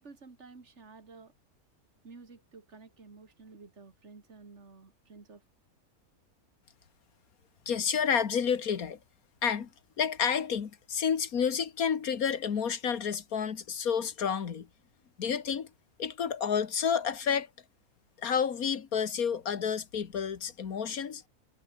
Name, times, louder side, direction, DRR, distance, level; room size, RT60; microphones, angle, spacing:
voice 1, 0.0-1.3 2.0-5.4, right 4 dB, 50° right, 2.9 m, -52 dB
voice 2, 7.7-9.0 9.4-9.7 10.0-14.7 15.2-15.7 16.0-17.5 18.2-21.2, left 7 dB, 80° left, 2.0 m, -30 dB
omnidirectional pair, 1.5 m